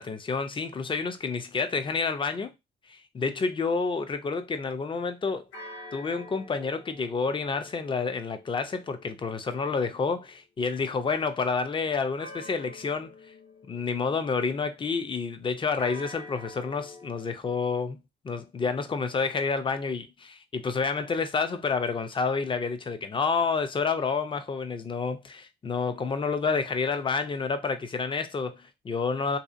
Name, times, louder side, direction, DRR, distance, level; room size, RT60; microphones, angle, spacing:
voice 1, 0.0-2.5 2.9-5.5 5.9-13.1 13.7-18.0 18.2-29.4, left 4 dB, 25° left, 0.4 m, -29 dB
sound 1, 5.5-10.4 12.2-14.6 15.8-17.2, left 1 dB, 70° left, 1.1 m, -47 dB
2.7 x 2.4 x 2.4 m
cardioid pair, 90°, 20 cm